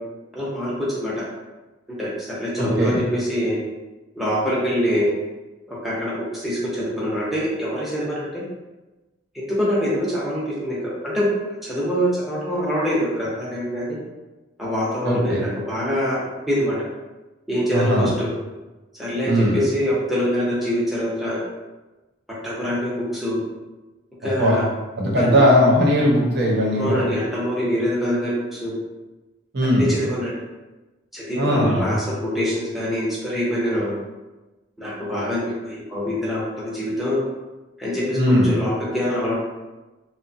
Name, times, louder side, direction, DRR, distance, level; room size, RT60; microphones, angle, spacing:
voice 1, 0.3-1.2 2.0-3.6 4.2-5.1 5.7-8.5 9.3-11.3 11.6-14.0 14.6-16.2 16.5-16.8 17.5-18.3 18.9-21.4 22.4-23.4 24.2-24.7 25.2-25.4 26.8-28.7 29.8-30.3 31.1-33.9 34.8-37.2 37.8-39.3, equal, ahead, -7 dB, 0.6 m, -24 dB
voice 2, 2.6-3.0 15.0-15.4 17.7-18.1 19.3-19.5 24.2-24.5 25.0-27.0 29.5-29.8 31.4-32.0 38.1-38.5, equal, 55° right, -3 dB, 0.7 m, -19 dB
2.8 x 2.2 x 2.6 m, 1.1 s
head